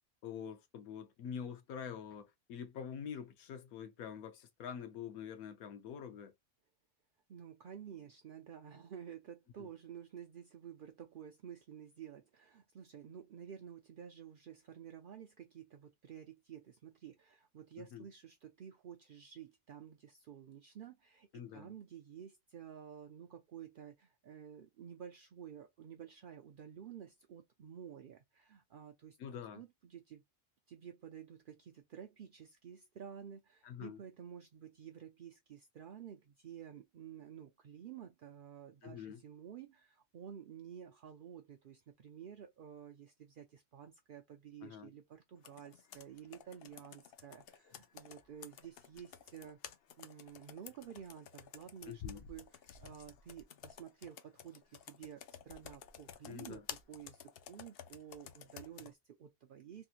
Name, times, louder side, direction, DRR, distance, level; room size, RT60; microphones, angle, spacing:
voice 1, 0.2-6.3 9.6-9.7 17.8-18.1 21.3-21.7 29.2-29.6 33.6-34.0 38.8-39.2 44.6-44.9 51.9-52.2 56.3-56.7, left 8 dB, 90° left, 1.2 m, -46 dB
voice 2, 7.3-21.3 21.5-29.2 29.5-30.2 30.7-49.6 50.0-59.9, right 9 dB, 65° right, 0.5 m, -52 dB
Computer keyboard, 45.4-58.9, left 8 dB, 70° left, 0.5 m, -53 dB
3.4 x 2.7 x 2.4 m
omnidirectional pair, 1.5 m